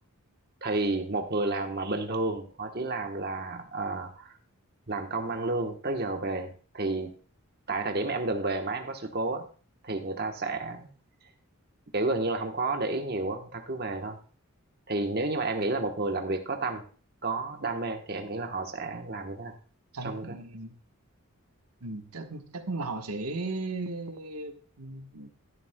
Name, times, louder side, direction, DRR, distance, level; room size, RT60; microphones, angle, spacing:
voice 1, 0.6-4.4 4.9-7.1 7.7-9.5 9.8-10.9 11.9-14.2 14.9-16.8 17.2-19.5 20.0-20.4, right 2 dB, 45° right, 4 dB, 1.1 m, -31 dB
voice 2, 19.9-20.8 21.8-25.3, right 2 dB, 80° right, 6 dB, 1.2 m, -36 dB
12.5 x 11.0 x 2.2 m, 0.40 s
head